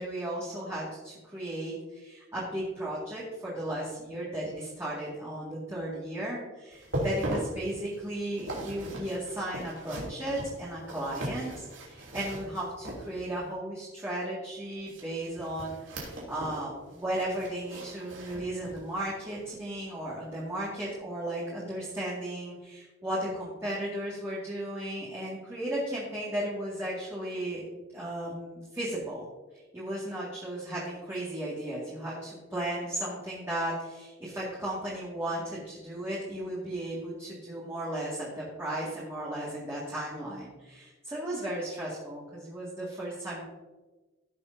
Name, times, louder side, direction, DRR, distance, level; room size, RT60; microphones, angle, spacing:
voice 1, 0.0-27.7 27.9-29.2 29.7-43.4, right 1 dB, 15° right, -8 dB, 2.1 m, -35 dB
sound 1, 6.7-13.5 14.8-16.7 16.9-18.9 19.3-19.5 20.0-20.1, right 1 dB, 70° right, 3.0 m, -38 dB
16.0 x 6.8 x 2.8 m, 1.2 s
head